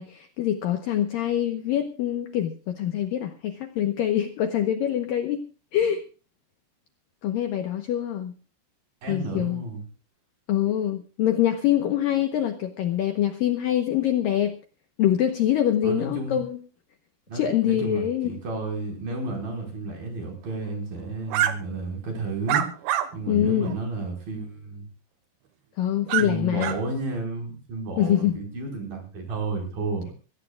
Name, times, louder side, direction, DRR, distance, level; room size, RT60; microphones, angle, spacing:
voice 1, 0.0-5.4 5.7-6.0 7.2-8.4 9.1-9.6 10.5-14.6 15.0-16.6 17.3-18.3 23.3-23.8 25.8-26.8 28.0-28.4, left 11 dB, 75° left, 7 dB, 2.1 m, -24 dB
voice 2, 9.0-9.8 15.8-16.4 17.3-22.8 23.1-24.9 26.2-30.1, right 3 dB, 50° right, 2 dB, 6.3 m, -32 dB
sound 1, 21.3-21.5 22.5-23.1 23.6-23.7 26.1-26.3 26.6-26.8, right 11 dB, 75° right, 3.2 m, -24 dB
23.5 x 16.5 x 2.4 m, 0.35 s
omnidirectional pair, 5.2 m